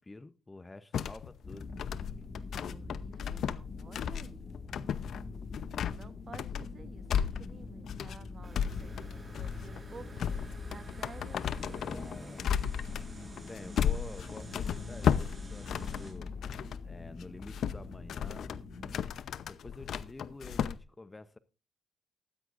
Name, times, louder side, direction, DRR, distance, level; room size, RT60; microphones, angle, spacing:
voice 1, 0.0-1.7 11.8-12.5 13.4-16.3 16.8-18.6 19.5-21.4, left 2 dB, 20° left, 0.8 m, -48 dB
sound 1, 0.9-16.8 17.2-20.8, left 8 dB, 65° left, 0.7 m, -35 dB
sound 2, 1.4-19.0, left 4 dB, 40° left, 1.8 m, -44 dB
voice 2, 2.7-4.5 5.9-12.6, right 5 dB, 40° right, 1.2 m, -52 dB
sound 3, 8.4-16.1, right 2 dB, 25° right, 5.0 m, -52 dB
14.0 x 13.0 x 2.6 m
cardioid pair, 90°, 0 cm